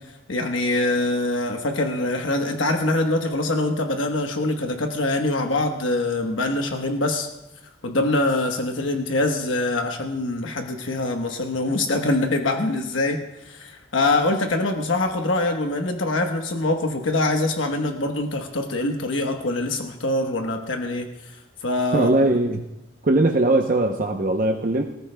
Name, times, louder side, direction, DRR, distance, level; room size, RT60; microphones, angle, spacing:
voice 1, 0.3-7.3 7.8-22.1, left 2 dB, 90° left, 3 dB, 1.1 m, -24 dB
voice 2, 21.9-22.7 23.0-24.8, right 2 dB, 45° right, 2 dB, 0.7 m, -20 dB
24.5 x 14.0 x 2.2 m, 0.95 s
head